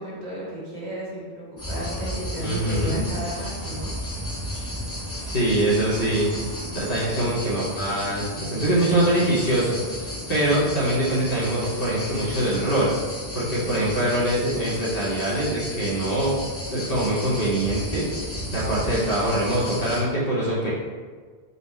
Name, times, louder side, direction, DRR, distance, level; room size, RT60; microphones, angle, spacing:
voice 1, 0.0-3.9, equal, 75° right, -7 dB, 1.6 m, -34 dB
sound 1, 1.6-20.0, equal, 15° left, 0.6 m, -33 dB
voice 2, 2.4-3.0 5.3-6.3 6.7-12.9 13.3-16.3 16.7-20.7, right 1 dB, 40° left, -8 dB, 1.2 m, -24 dB
4.2 x 2.2 x 4.1 m, 1.5 s
omnidirectional pair, 1.1 m